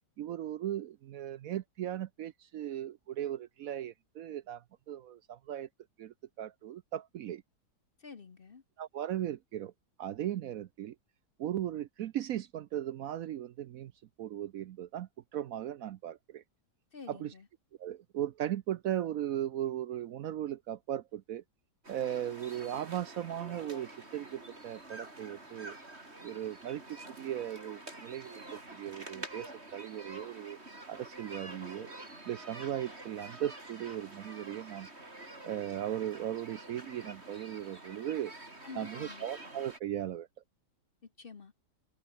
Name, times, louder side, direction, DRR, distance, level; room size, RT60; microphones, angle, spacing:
voice 1, 0.2-5.7 6.0-7.4 8.8-9.7 10.0-11.0 11.4-13.9 14.2-16.4 17.1-17.3 17.8-21.4 21.9-25.7 26.2-30.6 30.9-31.9 32.3-34.9 35.4-38.3 38.8-40.3, right 11 dB, 65° right, 1.0 m, -37 dB
voice 2, 8.0-8.6 16.9-17.5 38.6-39.3 41.0-41.5, left 5 dB, 40° left, 1.1 m, -49 dB
sound 1, 21.8-39.8, right 2 dB, 40° right, 5.6 m, -48 dB
omnidirectional pair, 1.7 m